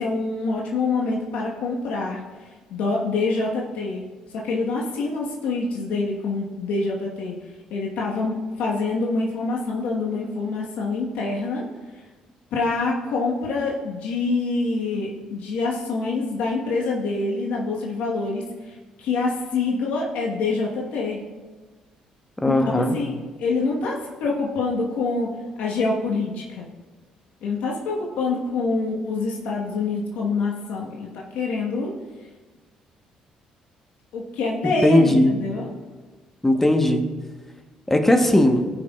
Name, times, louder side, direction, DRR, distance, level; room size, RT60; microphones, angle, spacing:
voice 1, 0.0-2.2 2.7-4.0 4.3-7.3 7.7-11.6 12.5-21.2 22.5-25.3 25.6-26.7 27.4-31.9 34.1-35.7, left 3 dB, 80° left, -2 dB, 1.3 m, -26 dB
voice 2, 22.4-22.9 34.8-35.3 36.4-37.0 37.9-38.7, left 1 dB, 10° left, 5 dB, 1.1 m, -18 dB
17.5 x 5.9 x 2.4 m, 1.4 s
supercardioid pair, 70°, 2 cm